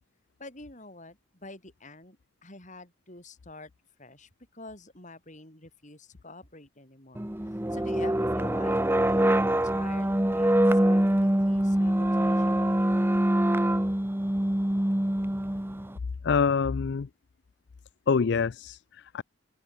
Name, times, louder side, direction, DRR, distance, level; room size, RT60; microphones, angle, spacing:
voice 1, 0.4-3.7 4.0-8.8 9.1-12.9, left 2 dB, 40° left, 8.0 m, -48 dB
sound 1, 7.2-15.9, right 1 dB, 10° right, 1.0 m, -24 dB
voice 2, 16.2-17.1 18.1-19.2, left 5 dB, 60° left, 0.4 m, -26 dB
head